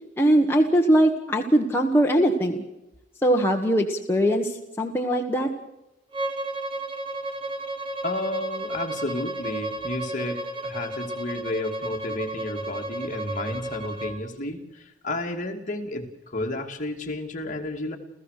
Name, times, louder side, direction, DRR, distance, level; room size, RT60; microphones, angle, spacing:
voice 1, 0.2-2.6 3.2-5.5, right 1 dB, 15° left, 1 dB, 1.4 m, -21 dB
Bowed string instrument, 6.1-14.2, right 1 dB, 30° right, 1.7 m, -33 dB
voice 2, 8.0-18.0, left 1 dB, 45° left, 2 dB, 2.5 m, -32 dB
30.0 x 15.0 x 6.6 m, 0.94 s
head